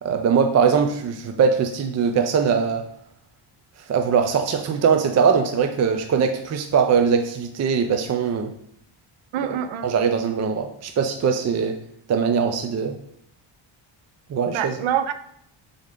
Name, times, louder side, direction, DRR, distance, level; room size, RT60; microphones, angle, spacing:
voice 1, 0.0-2.8 3.9-8.5 9.4-11.8 12.1-13.0 14.3-14.8, right 6 dB, 35° right, 6 dB, 0.4 m, -21 dB
voice 2, 9.3-9.9 14.5-15.1, right 9 dB, 75° right, 11 dB, 0.7 m, -25 dB
7.4 x 3.9 x 3.7 m, 0.70 s
cardioid pair, 145°, 48 cm